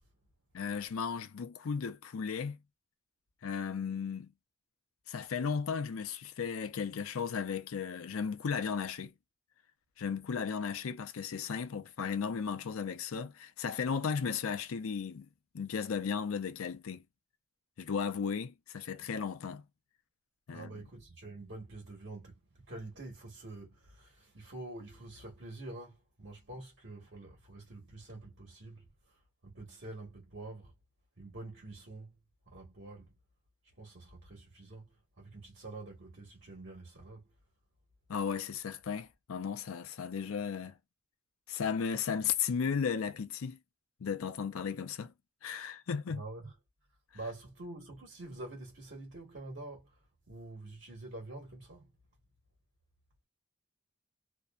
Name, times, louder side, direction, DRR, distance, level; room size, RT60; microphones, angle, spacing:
voice 1, 0.5-2.6 3.4-4.3 5.1-9.1 10.0-15.3 15.5-17.0 17.8-19.6 20.5-20.7 38.1-40.8 41.5-43.6 44.0-45.1 45.4-46.2, left 6 dB, 80° left, 0.5 m, -35 dB
voice 2, 20.5-22.4 22.7-29.2 29.4-30.7 31.2-32.1 32.5-33.1 33.8-37.3 46.1-46.5 47.1-49.9 50.3-51.9, right 2 dB, 55° right, 1.2 m, -47 dB
2.6 x 2.1 x 2.2 m
head